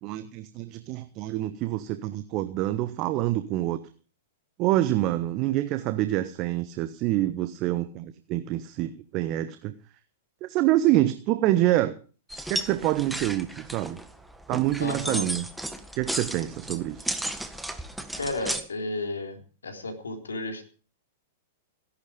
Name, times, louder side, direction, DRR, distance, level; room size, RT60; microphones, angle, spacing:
voice 1, 0.0-3.8 4.6-9.7 10.4-11.9 12.5-14.0 14.5-15.5 15.9-17.1, right 15 dB, 40° right, 11 dB, 1.1 m, -26 dB
sound 1, 12.3-18.6, right 1 dB, 5° right, 1.7 m, -34 dB
voice 2, 14.8-15.3 18.2-19.4 19.6-20.6, left 2 dB, 80° left, 4 dB, 3.7 m, -32 dB
17.0 x 11.5 x 5.1 m, 0.38 s
figure-of-eight pair, 100°, 0 cm